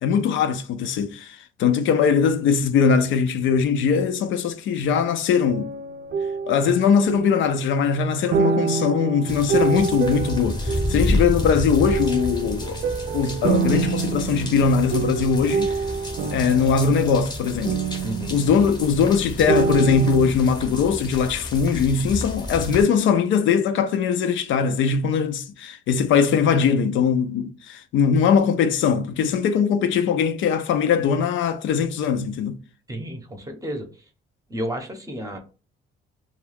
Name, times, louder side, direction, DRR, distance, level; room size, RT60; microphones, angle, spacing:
voice 1, 0.0-5.7 6.5-12.8 13.1-15.8 16.3-17.8 18.3-32.6, left 6 dB, 75° left, 0.4 m, -21 dB
sound 1, 5.3-7.8 8.3-11.4 11.8-19.2 19.5-20.3, right 5 dB, 50° right, 0.5 m, -27 dB
sound 2, 9.3-22.8, left 1 dB, 20° left, 0.7 m, -30 dB
voice 2, 18.0-18.4 32.9-34.0 34.5-35.4, equal, 15° right, 0.7 m, -32 dB
2.3 x 2.2 x 3.3 m
cardioid pair, 90°, 20 cm